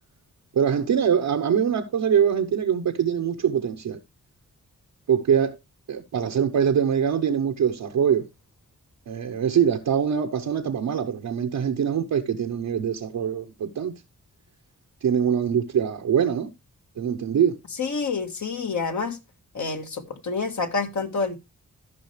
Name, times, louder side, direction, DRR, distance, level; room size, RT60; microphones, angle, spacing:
voice 1, 0.5-4.0 5.1-5.6 5.9-8.3 9.1-13.9 15.0-16.5 17.0-17.6, right 8 dB, 85° right, 1.0 m, -23 dB
voice 2, 17.8-19.2 19.5-21.4, left 4 dB, 65° left, 1.7 m, -28 dB
14.0 x 5.5 x 3.2 m
cardioid pair, 60°, 31 cm